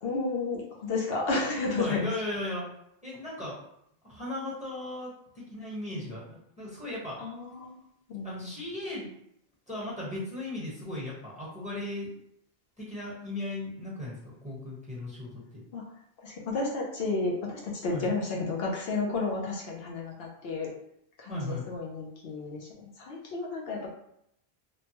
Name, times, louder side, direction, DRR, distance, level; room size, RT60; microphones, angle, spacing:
voice 1, 0.0-2.1 7.2-7.8 8.1-8.6 15.7-15.8 16.2-20.7 21.2-23.9, left 3 dB, 75° left, -2 dB, 0.9 m, -32 dB
voice 2, 1.8-2.7 3.0-3.6 4.1-7.2 8.2-9.1 9.7-12.2 12.8-15.6 17.9-18.1 21.3-21.7, left 1 dB, 5° right, -8 dB, 1.0 m, -37 dB
3.0 x 2.1 x 2.8 m, 0.74 s
omnidirectional pair, 1.0 m